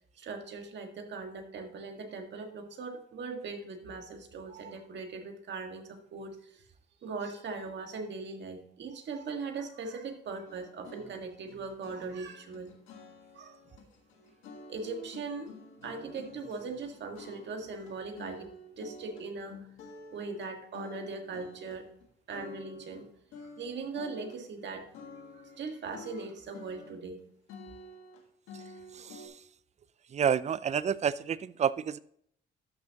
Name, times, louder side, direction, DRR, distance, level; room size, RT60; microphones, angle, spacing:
voice 1, 0.2-6.5 7.0-12.7 13.3-13.6 14.7-15.5 15.8-18.5 18.8-19.7 20.1-21.9 22.3-23.1 23.6-24.9 25.6-27.2, right 4 dB, 65° right, 4 dB, 1.6 m, -40 dB
sound 1, 10.5-22.1 22.3-23.1 23.3-25.6 25.9-27.2 27.5-29.3, left 2 dB, 85° left, 1.6 m, -49 dB
voice 2, 30.1-32.0, right 8 dB, 35° right, 18 dB, 0.4 m, -28 dB
13.0 x 6.2 x 2.9 m, 0.66 s
cardioid pair, 90°, 20 cm